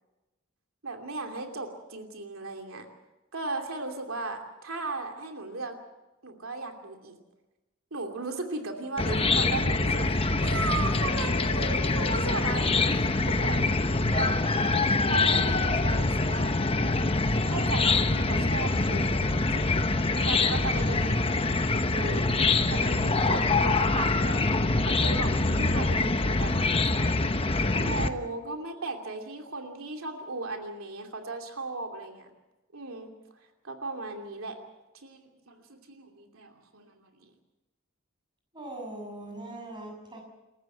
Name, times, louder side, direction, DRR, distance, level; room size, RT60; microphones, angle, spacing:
voice 1, 0.8-2.9 3.3-5.7 6.2-7.2 7.9-14.6 15.1-17.2 17.5-19.7 20.1-21.2 21.7-22.3 22.7-24.4 24.8-27.1 27.7-32.3 32.7-33.1 33.6-34.6 34.9-35.2 35.5-37.3, right 3 dB, 80° right, 4 dB, 2.8 m, -36 dB
Chicken rooster / Cricket, 9.0-28.1, left 3 dB, 25° left, 1.0 m, -25 dB
voice 2, 38.5-40.2, right 1 dB, 20° right, 1 dB, 6.9 m, -40 dB
28.0 x 14.5 x 8.0 m, 1.0 s
head